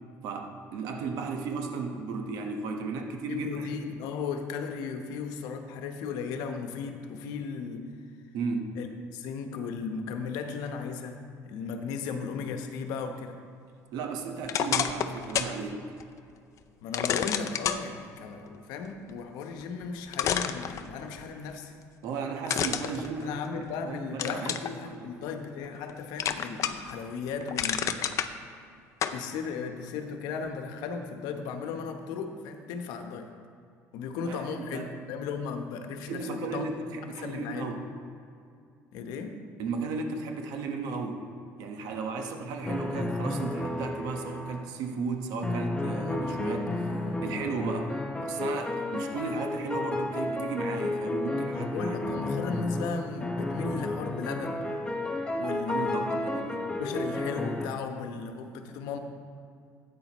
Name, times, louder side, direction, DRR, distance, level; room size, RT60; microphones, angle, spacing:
voice 1, 0.2-3.7 8.3-8.7 13.9-15.9 22.0-23.4 23.9-24.6 24.8-25.1 34.2-34.9 36.1-37.8 39.6-41.2 41.6-47.9 48.2-52.0 55.7-56.7, right 4 dB, 75° right, 3 dB, 1.2 m, -35 dB
voice 2, 3.3-7.9 8.8-13.4 16.8-21.7 23.2-28.1 29.1-33.3 33.9-36.8 37.2-37.7 38.9-39.4 51.5-54.6 55.4-56.1 56.8-59.0, left 5 dB, 80° left, 6 dB, 0.9 m, -36 dB
sound 1, 14.4-15.6 16.0-16.1 16.9-17.8 19.6-19.7 20.1-21.2 22.5-23.7 24.2-24.7 25.2-25.9 26.2-26.9 27.3-28.3 29.0-29.2, left 9 dB, 50° left, 0.5 m, -29 dB
sound 2, 42.6-44.7 45.4-57.7, left 2 dB, 15° left, 0.9 m, -32 dB
13.5 x 9.0 x 3.0 m, 2.4 s
cardioid pair, 115°, 7 cm